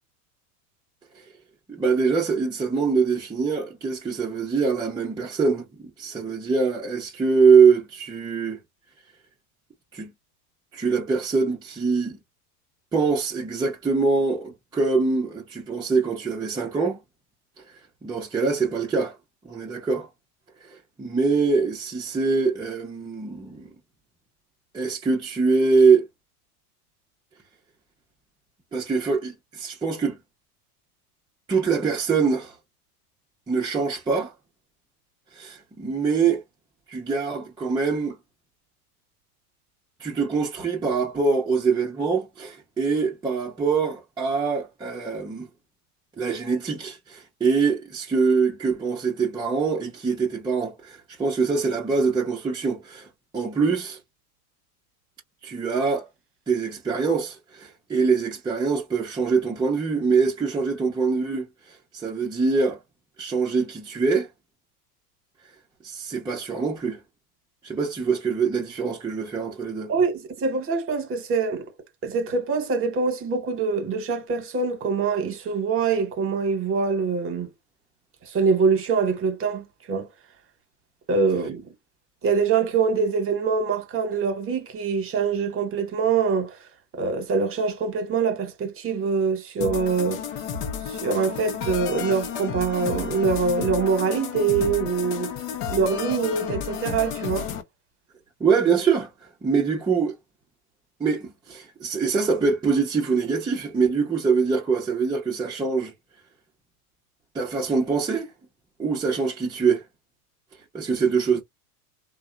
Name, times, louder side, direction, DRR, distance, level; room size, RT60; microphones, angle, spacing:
voice 1, 1.7-8.6 9.9-10.1 10.7-12.2 12.9-17.0 18.0-19.2 19.4-20.1 20.6-23.7 24.7-26.1 28.7-30.2 31.5-32.6 33.5-34.3 35.3-36.4 36.9-38.2 40.0-45.5 46.2-53.1 53.3-54.0 55.4-56.1 56.5-62.8 63.2-64.3 65.8-67.0 67.6-69.9 98.4-99.1 99.4-100.2 101.0-105.9 107.3-108.3 108.8-109.8 110.7-111.4, right 5 dB, 10° right, 0.6 m, -24 dB
voice 2, 69.9-71.6 72.0-77.5 78.3-80.1 81.1-81.6 82.2-86.5 86.9-90.2 91.0-95.3 95.7-97.5, right 5 dB, 30° right, 1.1 m, -24 dB
sound 1, 89.6-97.6, left 7 dB, 60° left, 0.8 m, -31 dB
2.8 x 2.2 x 2.4 m
hypercardioid pair, 110°, 46 cm